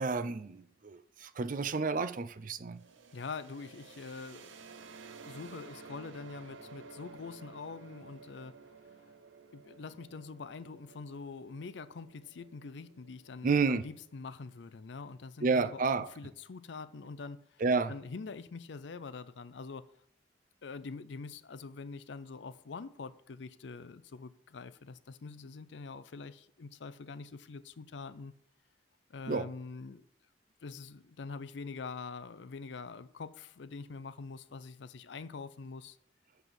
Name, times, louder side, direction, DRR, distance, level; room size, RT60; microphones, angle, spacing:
voice 1, 0.0-2.8 13.4-13.8 15.4-16.1 17.6-17.9 29.3-29.5, right 4 dB, 45° right, 0.5 m, -30 dB
sound 1, 2.7-14.4, right 4 dB, 85° right, 0.8 m, -54 dB
voice 2, 3.1-4.8 5.3-8.6 9.5-17.6 17.9-19.9 20.6-28.3 29.1-30.0 30.6-36.0, left 4 dB, 70° left, 0.5 m, -45 dB
6.9 x 6.0 x 7.6 m
head